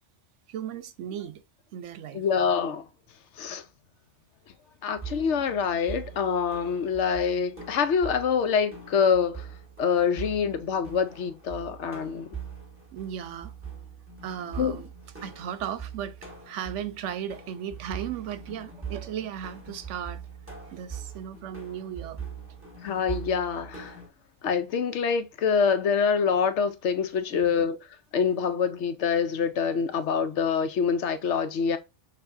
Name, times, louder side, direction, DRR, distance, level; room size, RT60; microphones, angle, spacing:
voice 1, 0.5-1.4 1.7-2.2 12.9-13.5 14.2-14.9 15.2-16.2 16.5-20.2 20.7-22.2 27.3-27.6, right 9 dB, 85° right, 1.0 m, -36 dB
voice 2, 2.1-2.9 3.4-3.6 4.8-9.5 9.8-12.3 14.6-14.8 22.8-24.0 24.4-27.8 28.1-31.8, left 6 dB, 80° left, 1.0 m, -25 dB
sound 1, 5.0-24.1, right 6 dB, 10° right, 1.8 m, -42 dB
6.7 x 2.6 x 2.6 m
omnidirectional pair, 1.2 m